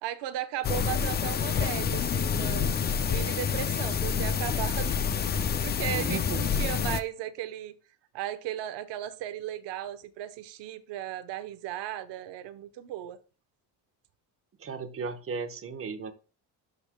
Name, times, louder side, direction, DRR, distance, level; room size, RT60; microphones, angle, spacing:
voice 1, 0.0-2.7 3.1-5.0 5.3-7.7 8.1-13.2, right 12 dB, 90° right, 1.0 m, -36 dB
sound 1, 0.6-7.0, left 7 dB, 25° left, 0.3 m, -28 dB
voice 2, 5.9-6.6 14.6-16.1, right 5 dB, 30° right, 1.0 m, -36 dB
13.0 x 5.3 x 2.2 m
cardioid pair, 150°, 41 cm